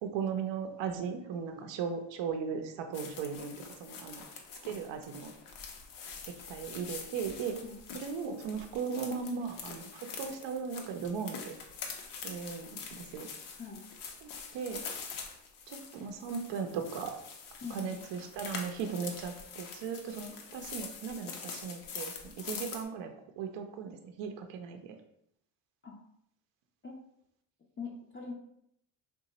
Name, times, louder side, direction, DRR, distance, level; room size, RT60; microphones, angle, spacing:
voice 1, 0.0-4.2 4.6-5.3 6.3-7.6 7.9-11.6 12.2-13.3 14.2-14.8 15.7-17.2 17.7-23.1 23.4-25.0, right 6 dB, 65° right, 6 dB, 0.6 m, -37 dB
sound 1, 2.9-22.8, left 5 dB, 90° left, 0.7 m, -45 dB
voice 2, 27.8-28.3, left 5 dB, 25° left, -2 dB, 0.5 m, -42 dB
2.8 x 2.3 x 4.0 m, 0.74 s
supercardioid pair, 85°, 48 cm